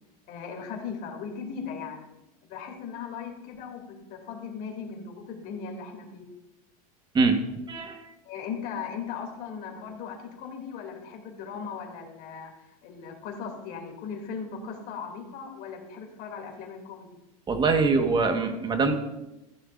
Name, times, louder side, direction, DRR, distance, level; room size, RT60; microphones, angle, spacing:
voice 1, 0.3-2.0 2.4-6.2 8.2-17.1, left 6 dB, 50° left, 1 dB, 2.9 m, -38 dB
voice 2, 7.7-8.0 17.5-18.9, right 4 dB, 25° right, 5 dB, 1.5 m, -23 dB
14.5 x 11.0 x 2.6 m, 0.94 s
supercardioid pair, 110°, 19 cm